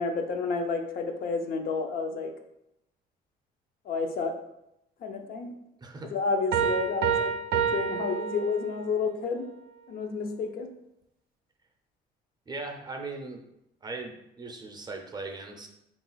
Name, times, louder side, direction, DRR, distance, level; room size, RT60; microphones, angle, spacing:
voice 1, 0.0-2.3 3.9-4.3 5.0-5.5 6.1-9.5 9.9-10.7, left 4 dB, 60° left, 5 dB, 0.5 m, -30 dB
voice 2, 5.8-6.1 12.5-13.4 13.8-15.7, right 3 dB, 25° right, 3 dB, 0.6 m, -39 dB
Piano, 6.5-9.0, right 7 dB, 75° right, 0.4 m, -28 dB
3.7 x 2.4 x 3.8 m, 0.83 s
cardioid pair, 110°, 17 cm